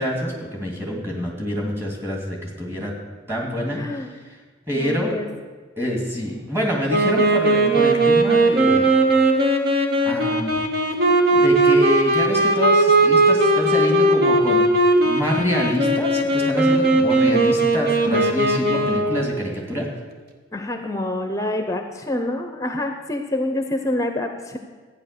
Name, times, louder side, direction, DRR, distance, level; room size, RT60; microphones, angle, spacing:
voice 1, 0.0-2.9 3.3-4.4 4.7-5.2 5.8-8.9 10.0-10.5 11.3-14.6 15.0-19.9, equal, 10° right, -1 dB, 2.5 m, -26 dB
voice 2, 3.8-4.1 4.7-5.3 20.5-24.6, left 1 dB, 15° left, 6 dB, 0.7 m, -26 dB
Wind instrument woodwind instrument, 6.9-19.3, right 2 dB, 55° right, 1.5 m, -18 dB
13.0 x 9.5 x 6.7 m, 1.4 s
head